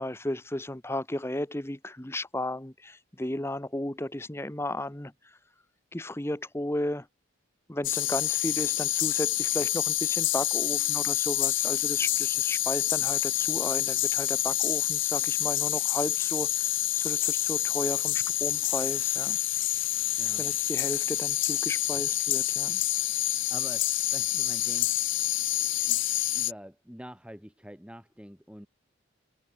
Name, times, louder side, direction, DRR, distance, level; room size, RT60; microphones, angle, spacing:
voice 1, 0.0-5.4 5.9-7.1 7.7-19.4 20.4-22.8, left 1 dB, 10° left, 0.9 m, -34 dB
sound 1, 7.8-26.5, left 15 dB, 65° left, 1.1 m, -27 dB
voice 2, 23.5-24.9 25.6-28.7, equal, 5° right, 4.7 m, -46 dB
head